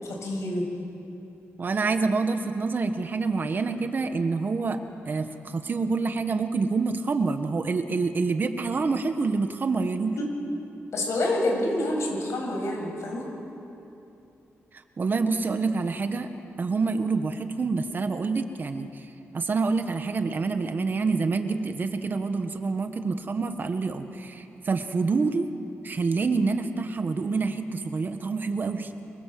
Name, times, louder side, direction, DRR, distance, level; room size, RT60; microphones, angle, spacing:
voice 1, 0.0-0.6 10.2-10.3 10.9-13.3, left 1 dB, 75° left, 1 dB, 7.6 m, -27 dB
voice 2, 1.6-4.8 5.1-10.2 15.0-16.3 16.6-18.9 19.3-25.5 25.8-28.9, right 4 dB, 40° right, 7 dB, 1.6 m, -27 dB
27.5 x 25.0 x 7.8 m, 2.8 s
wide cardioid pair, 135°, 5 cm